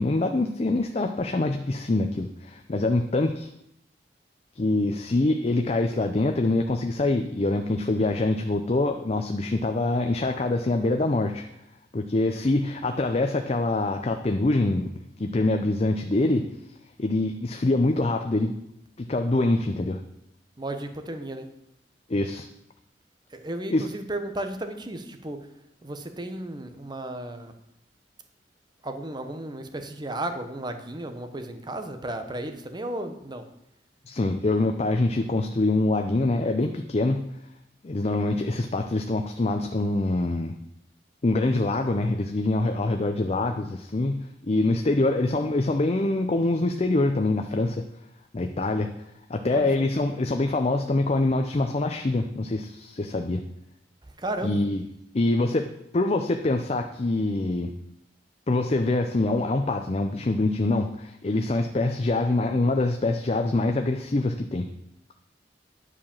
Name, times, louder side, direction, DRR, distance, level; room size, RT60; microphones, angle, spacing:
voice 1, 0.0-3.5 4.6-11.4 11.9-14.9 15.2-16.5 17.0-18.5 19.0-20.0 22.1-22.5 23.7-23.9 34.1-37.2 37.8-40.5 41.2-47.8 48.3-48.9 49.3-53.4 54.4-54.8 55.1-57.7 58.5-64.7, left 2 dB, 35° left, 5 dB, 0.5 m, -25 dB
voice 2, 20.6-21.5 23.3-25.5 25.8-27.5 28.8-33.4 49.5-49.8 54.2-54.6, right 1 dB, 25° right, 7 dB, 0.9 m, -34 dB
9.9 x 4.9 x 7.1 m, 0.79 s
head